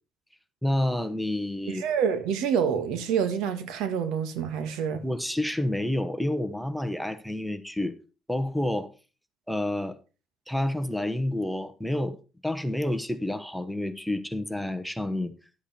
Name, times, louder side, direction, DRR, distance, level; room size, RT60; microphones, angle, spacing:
voice 1, 0.6-1.8 5.0-7.9 8.3-8.9 9.5-10.0 10.5-12.2 12.4-15.3, left 1 dB, ahead, 1.1 m, -29 dB
voice 2, 1.7-5.0, right 7 dB, 85° right, 1.8 m, -27 dB
11.5 x 8.1 x 4.3 m
cardioid pair, 130°, 0 cm